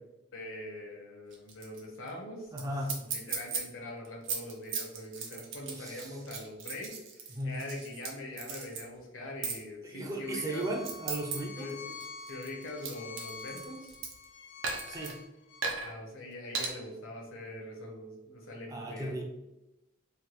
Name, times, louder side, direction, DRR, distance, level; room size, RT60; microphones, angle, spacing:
voice 1, 0.3-2.5 2.9-10.7 11.5-14.0 15.8-19.2, left 1 dB, 85° left, 0 dB, 0.8 m, -43 dB
sound 1, 1.3-1.8 2.1-2.2 2.6-2.7 2.9-3.6 4.0-8.1 8.4-8.8 9.4-9.6 10.3-11.4 11.7-14.2 14.6-15.1 15.6-15.9 16.5-16.7, right 5 dB, 75° right, 0.6 m, -36 dB
voice 2, 2.5-3.0 5.8-6.2 7.3-7.6 9.8-11.7 14.9-15.2 18.7-19.2, right 1 dB, 15° right, 1 dB, 0.3 m, -36 dB
Bowed string instrument, 10.2-15.6, left 5 dB, 60° left, 0.4 m, -47 dB
3.2 x 2.3 x 3.0 m, 0.97 s
head